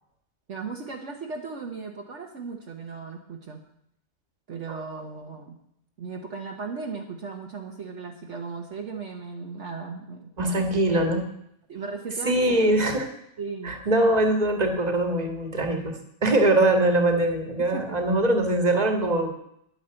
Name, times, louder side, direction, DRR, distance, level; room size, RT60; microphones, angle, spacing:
voice 1, 0.5-3.6 4.5-5.6 6.0-11.0 11.7-12.8 13.4-13.8 17.7-18.0, right 4 dB, 60° right, 2 dB, 1.4 m, -36 dB
voice 2, 10.4-11.2 12.3-13.0 13.6-19.3, right 1 dB, 30° right, 5 dB, 1.8 m, -22 dB
10.5 x 9.6 x 7.8 m, 0.76 s
omnidirectional pair, 1.4 m